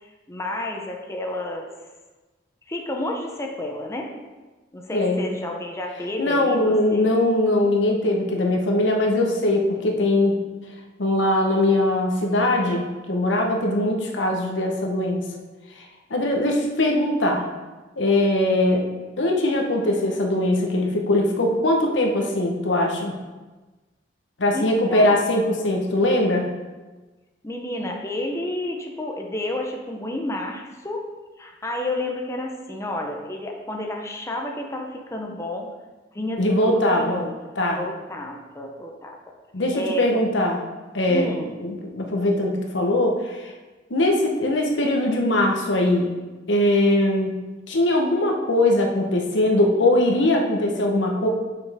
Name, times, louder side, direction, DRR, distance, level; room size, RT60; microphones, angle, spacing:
voice 1, 0.0-1.7 2.7-4.1 4.7-7.2 24.5-25.2 27.4-31.0 31.4-35.7 36.1-37.3 37.8-39.2 39.7-40.2 41.1-41.5, left 1 dB, 15° left, 1 dB, 0.6 m, -30 dB
voice 2, 4.9-5.2 6.2-10.5 11.0-15.2 16.1-17.4 18.0-18.8 19.2-23.1 24.4-26.5 36.4-37.2 37.6-37.8 39.5-40.6 40.9-41.3 41.6-43.5 43.9-46.1 46.5-47.4 47.7-51.3, left 1 dB, 75° left, 1 dB, 1.0 m, -21 dB
6.8 x 5.8 x 3.5 m, 1.2 s
head